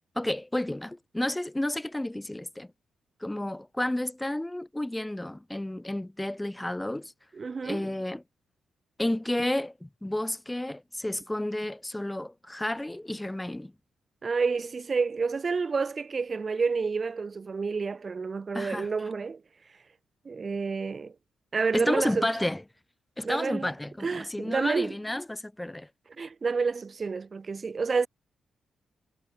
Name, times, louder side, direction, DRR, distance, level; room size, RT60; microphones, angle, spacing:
voice 1, 0.2-2.7 3.2-7.1 7.6-8.2 9.0-13.7 18.5-18.9 21.7-22.6 23.2-25.9, left 1 dB, 10° left, 0.6 m, -31 dB
voice 2, 7.3-7.9 14.2-19.4 20.3-21.1 21.5-22.3 23.2-23.7 24.0-25.0 26.2-28.1, right 4 dB, 45° right, 0.7 m, -29 dB
hypercardioid pair, 40°, 0 cm